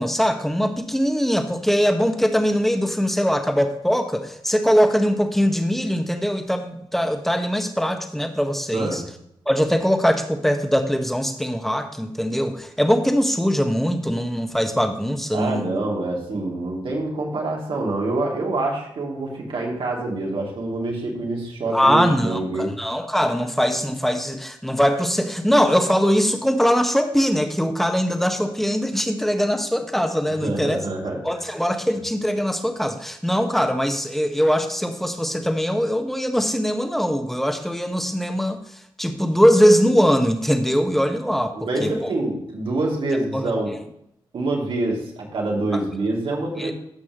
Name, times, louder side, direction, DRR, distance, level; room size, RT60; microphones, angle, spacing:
voice 1, 0.0-9.0 9.4-15.7 21.7-30.8 31.2-38.6 39.0-42.1 43.3-43.5 45.7-45.8 46.6-46.7, equal, 5° left, 5 dB, 1.5 m, -21 dB
voice 2, 8.7-9.1 15.3-22.8 30.3-31.2 41.5-43.8 44.3-46.7, right 2 dB, 70° right, -1 dB, 3.2 m, -26 dB
15.0 x 6.0 x 3.2 m, 0.76 s
cardioid pair, 65°, 9 cm